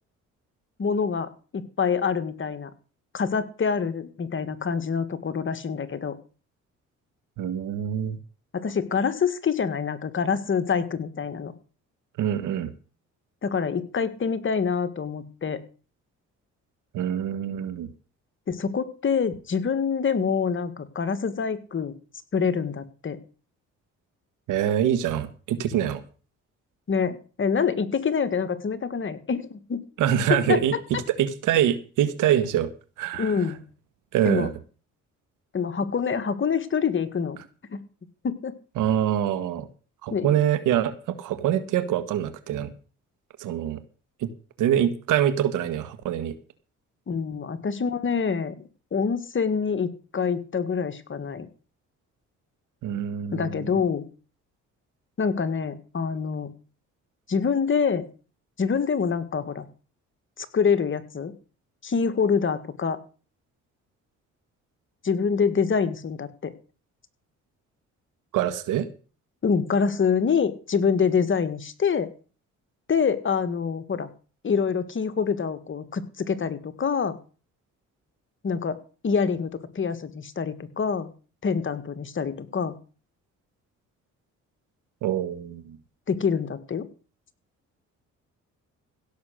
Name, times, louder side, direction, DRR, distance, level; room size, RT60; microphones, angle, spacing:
voice 1, 0.8-2.7 3.1-6.2 8.5-11.5 13.4-15.6 18.5-21.9 22.3-23.2 26.9-29.9 30.3-30.6 33.2-33.6 34.2-34.5 35.5-37.4 37.7-37.8 38.2-38.5 40.1-40.3 47.1-51.5 53.3-54.1 55.2-56.5 57.3-58.1 58.6-59.7 60.4-61.3 61.8-63.0 65.0-66.5 69.4-72.1 72.9-74.1 74.4-77.2 78.4-78.8 79.0-81.1 81.4-82.8 86.1-86.9, left 6 dB, 40° left, 11 dB, 1.8 m, -26 dB
voice 2, 7.4-8.2 12.2-12.7 16.9-17.9 24.5-26.0 30.0-30.7 31.2-32.7 33.0-33.4 34.1-34.5 38.8-39.7 40.0-42.7 43.4-43.8 44.2-44.3 44.6-46.3 52.8-53.7 68.3-68.9 85.0-85.8, right 10 dB, 90° right, 12 dB, 1.6 m, -25 dB
16.5 x 6.9 x 6.5 m, 0.38 s
cardioid pair, 90°, 30 cm